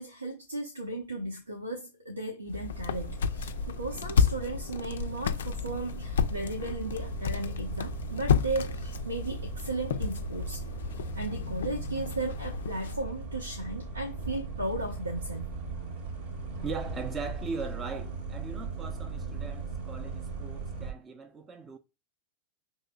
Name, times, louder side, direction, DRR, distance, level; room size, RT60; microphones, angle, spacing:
voice 1, 0.0-10.6 10.9-15.5, right 2 dB, 80° right, 0.8 m, -36 dB
sound 1, 2.5-13.0, left 6 dB, 65° left, 0.3 m, -32 dB
sound 2, 2.7-20.9, right 4 dB, 55° right, 0.9 m, -38 dB
voice 2, 16.6-21.8, right 4 dB, 20° right, 0.5 m, -39 dB
5.4 x 3.1 x 2.3 m
figure-of-eight pair, 90°, 0 cm